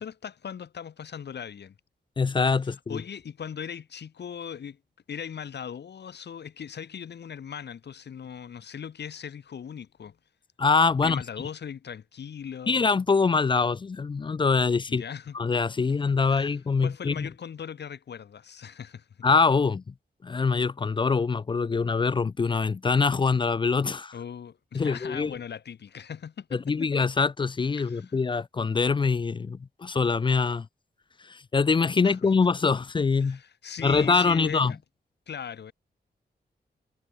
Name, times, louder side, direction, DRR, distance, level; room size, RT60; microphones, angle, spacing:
voice 1, 0.0-1.7 2.6-4.8 5.1-10.2 11.0-12.8 14.9-15.4 16.2-19.1 24.1-26.9 27.8-28.2 32.0-32.2 33.2-34.8 35.3-35.7, left 7 dB, 80° left, 4.2 m, -39 dB
voice 2, 2.2-3.0 10.6-11.2 12.7-15.0 15.3-17.3 19.2-19.9 20.2-24.1 24.7-25.3 26.5-30.7 31.2-33.4 33.8-34.7, left 4 dB, 30° left, 0.4 m, -24 dB
wide cardioid pair, 175°, 17 cm